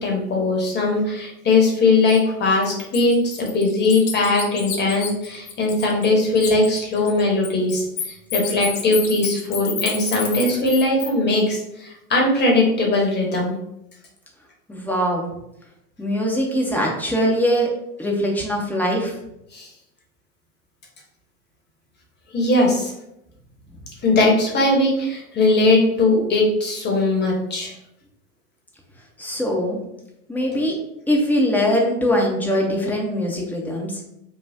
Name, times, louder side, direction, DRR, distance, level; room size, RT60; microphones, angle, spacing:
voice 1, 0.0-7.8 8.3-13.5 19.5-19.7 22.3-22.9 24.0-27.7, left 2 dB, 20° left, -1 dB, 1.1 m, -19 dB
Bird, 2.1-2.2 2.6-6.1 6.4-11.1, left 7 dB, 40° left, 0.7 m, -30 dB
voice 2, 14.7-15.3 16.0-17.7 18.0-19.1 29.2-29.8 30.3-30.7 31.1-34.0, equal, 5° left, -1 dB, 0.8 m, -22 dB
5.7 x 2.3 x 2.8 m, 0.83 s
figure-of-eight pair, 85°, 46 cm